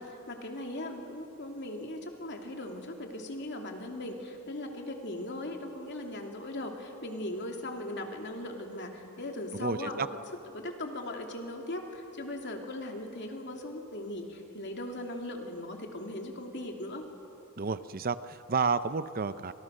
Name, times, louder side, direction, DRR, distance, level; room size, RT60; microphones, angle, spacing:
voice 1, 0.0-10.1 10.5-17.0, left 1 dB, 55° left, 2 dB, 3.0 m, -39 dB
voice 2, 9.5-10.1 17.6-19.5, right 5 dB, 45° right, 13 dB, 0.6 m, -31 dB
29.5 x 26.5 x 6.5 m, 3.0 s
head